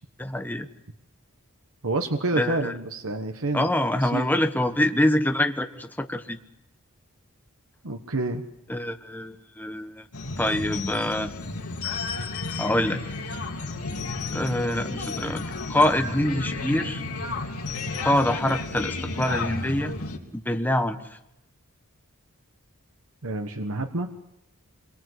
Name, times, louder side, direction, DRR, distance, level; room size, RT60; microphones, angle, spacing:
voice 1, 0.2-0.7 2.4-2.7 3.5-6.4 8.7-10.1 10.4-11.3 12.6-13.0 14.3-17.0 18.0-19.9 20.3-21.2, left 1 dB, 10° left, 6 dB, 1.3 m, -25 dB
voice 2, 1.8-3.7 4.0-4.3 7.8-8.4 23.2-24.1, right 2 dB, 65° right, 5 dB, 1.4 m, -28 dB
sound 1, 10.1-20.2, left 3 dB, 80° left, 3.4 m, -32 dB
26.0 x 23.0 x 8.2 m, 0.83 s
head